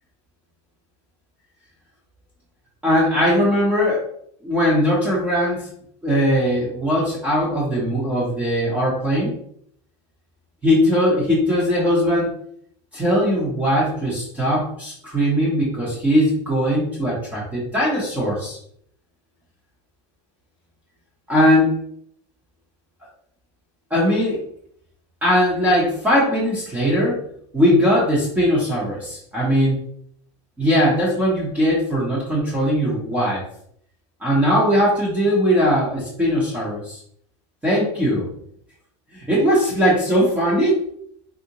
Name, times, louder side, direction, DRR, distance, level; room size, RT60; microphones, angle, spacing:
voice 1, 2.8-4.0 4.4-5.7 6.0-9.3 10.6-12.4 12.9-18.6 21.3-21.7 23.9-24.4 25.2-27.2 27.5-29.8 30.6-33.4 34.2-37.0 37.6-38.3 39.1-40.8, equal, 10° right, -6 dB, 0.7 m, -19 dB
3.7 x 2.1 x 2.8 m, 0.66 s
supercardioid pair, 155°, 16 cm